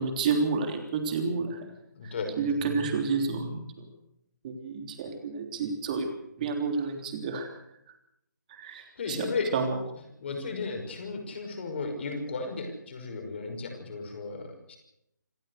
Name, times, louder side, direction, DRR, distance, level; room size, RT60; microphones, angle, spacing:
voice 1, 0.0-1.7 2.0-3.9 4.4-6.1 6.4-7.6 8.5-9.8, right 4 dB, 25° right, 5 dB, 3.4 m, -30 dB
voice 2, 2.0-2.3 9.0-9.5 10.2-14.8, left 4 dB, 35° left, 4 dB, 5.9 m, -34 dB
27.5 x 14.5 x 6.7 m, 0.80 s
figure-of-eight pair, 150°, 10 cm